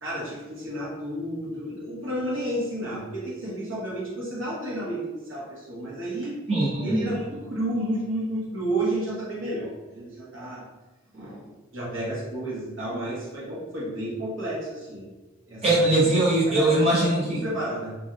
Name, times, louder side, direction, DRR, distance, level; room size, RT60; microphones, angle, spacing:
voice 1, 0.0-6.4 6.8-10.7 11.1-15.1 15.5-15.8 16.5-18.0, right 1 dB, 70° right, -6 dB, 1.1 m, -31 dB
voice 2, 6.5-7.1 15.6-17.4, right 2 dB, 30° right, -6 dB, 0.9 m, -21 dB
3.1 x 2.6 x 2.5 m, 1.1 s
head